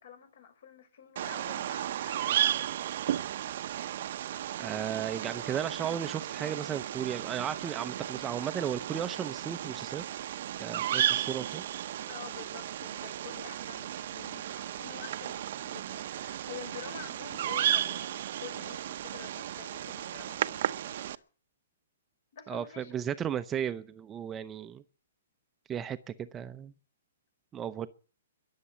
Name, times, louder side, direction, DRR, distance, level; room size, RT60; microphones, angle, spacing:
voice 1, 0.0-2.4 12.0-21.2 22.3-22.9, left 8 dB, 60° left, 5.7 m, -48 dB
Bird vocalization bird call bird song, 1.2-21.2, right 11 dB, 55° right, 0.8 m, -34 dB
voice 2, 4.6-10.0 10.6-11.6 22.5-24.8 25.7-26.7 27.5-27.9, right 9 dB, 15° right, 0.7 m, -35 dB
22.5 x 7.6 x 7.0 m
hypercardioid pair, 150°, 0 cm